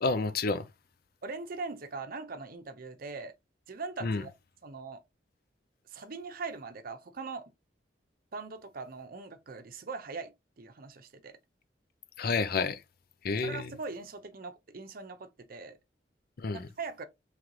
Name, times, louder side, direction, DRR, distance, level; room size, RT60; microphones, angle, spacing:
voice 1, 0.0-0.6 4.0-4.2 12.2-12.8 13.2-13.7 16.4-16.7, left 4 dB, 55° left, 0.5 m, -29 dB
voice 2, 1.2-3.3 3.7-4.3 4.6-5.0 5.9-7.5 8.3-11.4 13.4-15.8 16.5-17.0, right 4 dB, 50° right, 0.6 m, -41 dB
3.2 x 3.1 x 3.7 m
head